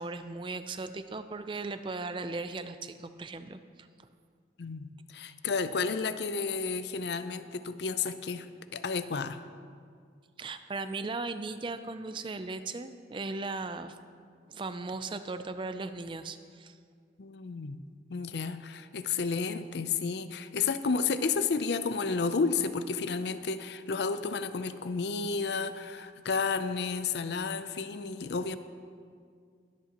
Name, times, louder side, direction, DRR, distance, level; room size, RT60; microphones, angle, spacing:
voice 1, 0.0-3.9 10.4-14.0 14.5-16.7, right 3 dB, 30° right, 10 dB, 0.4 m, -37 dB
voice 2, 4.6-8.5 8.7-9.4 17.2-17.8 18.1-28.6, left 4 dB, 70° left, 11 dB, 0.5 m, -31 dB
21.5 x 8.3 x 2.9 m, 2.1 s
head